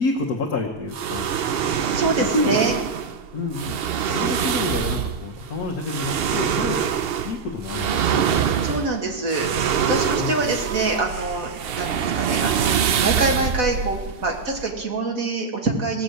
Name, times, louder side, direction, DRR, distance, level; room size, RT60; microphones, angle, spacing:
voice 1, 0.0-1.3 2.2-2.6 3.3-3.8 4.1-7.0 7.2-8.3 10.2-10.6, left 2 dB, 65° left, -1 dB, 1.6 m, -28 dB
sound 1, 0.9-14.8, right 8 dB, 75° right, 0.5 m, -25 dB
voice 2, 1.7-2.7 8.6-9.5 9.8-12.7 13.0-16.0, right 3 dB, 55° right, 1 dB, 2.3 m, -25 dB
18.5 x 6.8 x 7.8 m, 1.2 s
omnidirectional pair, 1.7 m